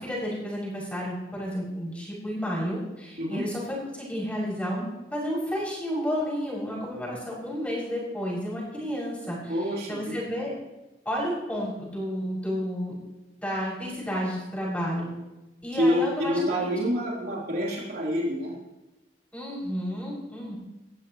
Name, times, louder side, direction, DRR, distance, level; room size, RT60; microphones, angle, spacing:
voice 1, 0.0-3.6 3.9-9.5 9.9-10.5 11.0-12.9 13.4-15.1 15.6-16.7 19.3-20.6, equal, 10° left, -6 dB, 6.6 m, -31 dB
voice 2, 9.5-10.1 15.7-18.5, equal, 55° right, -5 dB, 3.7 m, -27 dB
20.0 x 15.0 x 3.1 m, 1.0 s
head